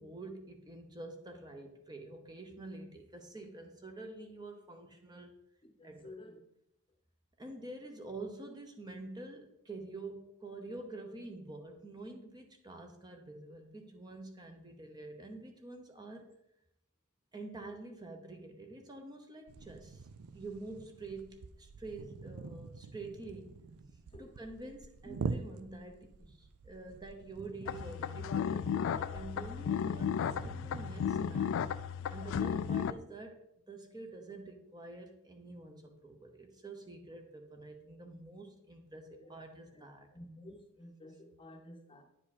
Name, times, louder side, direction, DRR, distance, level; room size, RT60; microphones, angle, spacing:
voice 1, 0.0-5.4 5.8-6.2 7.4-16.3 17.3-20.0 20.3-23.6 24.2-31.5 32.1-40.1, right 2 dB, 20° right, 4 dB, 0.9 m, -47 dB
voice 2, 5.8-6.4 24.1-24.3 25.0-25.3 39.2-39.4 39.7-39.8 40.1-42.0, left 1 dB, 25° left, 4 dB, 0.9 m, -52 dB
sound 1, 19.5-32.9, right 4 dB, 70° right, 0.5 m, -46 dB
sound 2, 27.6-32.9, left 7 dB, 60° left, 0.3 m, -34 dB
9.8 x 5.0 x 4.2 m, 0.77 s
head